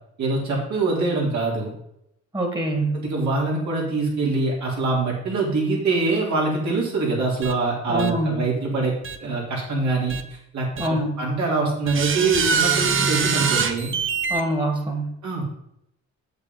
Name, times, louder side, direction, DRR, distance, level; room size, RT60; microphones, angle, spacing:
voice 1, 0.2-1.7 2.9-8.9 9.2-10.2 10.5-10.7 11.2-13.9 15.2-15.4, right 3 dB, 65° right, -3 dB, 3.6 m, -24 dB
voice 2, 2.3-3.0 7.9-8.5 10.8-11.2 14.3-15.2, right 1 dB, 15° right, 3 dB, 1.9 m, -25 dB
sound 1, 7.4-7.5 8.0-8.1 9.0-9.2 10.1-10.2 10.8-10.9 11.9-14.4, right 6 dB, 40° right, 0.9 m, -23 dB
7.9 x 7.5 x 3.9 m, 0.77 s
cardioid pair, 90°, 30 cm